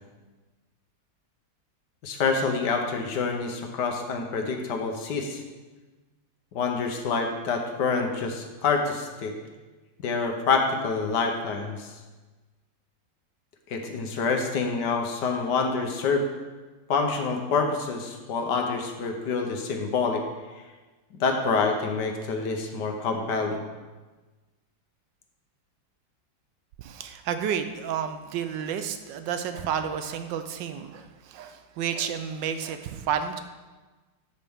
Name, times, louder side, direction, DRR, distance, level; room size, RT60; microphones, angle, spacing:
voice 1, 2.0-5.4 6.5-9.4 10.0-11.9 13.7-16.3 16.9-20.2 21.2-23.6, left 4 dB, 65° left, 3 dB, 1.4 m, -27 dB
voice 2, 26.8-33.4, right 8 dB, 75° right, 9 dB, 1.2 m, -31 dB
12.5 x 5.2 x 3.5 m, 1.3 s
omnidirectional pair, 2.1 m